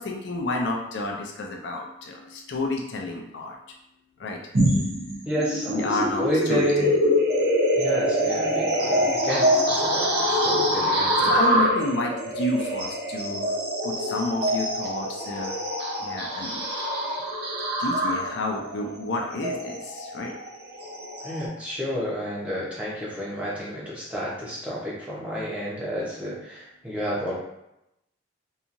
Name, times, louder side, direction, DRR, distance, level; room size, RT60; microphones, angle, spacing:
voice 1, 0.0-3.6 4.2-4.4 4.7-4.9 5.7-6.9 11.2-13.5 13.8-15.6 16.0-16.7 17.8-20.3, left 2 dB, 60° left, 0 dB, 0.4 m, -30 dB
sound 1, 4.5-21.5, equal, 50° right, 0.6 m, -25 dB
voice 2, 5.3-7.0 7.8-11.7 21.2-27.3, equal, 5° right, -7 dB, 0.7 m, -30 dB
2.8 x 2.3 x 2.5 m, 0.84 s
head